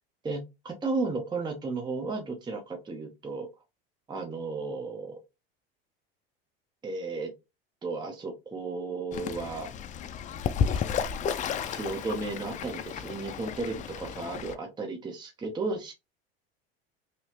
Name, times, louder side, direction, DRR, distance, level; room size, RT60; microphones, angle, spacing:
voice 1, 0.2-3.5 4.1-5.2 6.8-7.3 7.8-9.7 11.7-15.9, right 3 dB, 15° right, 0.7 m, -34 dB
Fowl / Bird, 9.1-14.5, left 7 dB, 25° left, 0.4 m, -32 dB
3.0 x 2.8 x 2.9 m
hypercardioid pair, 100°, 30 cm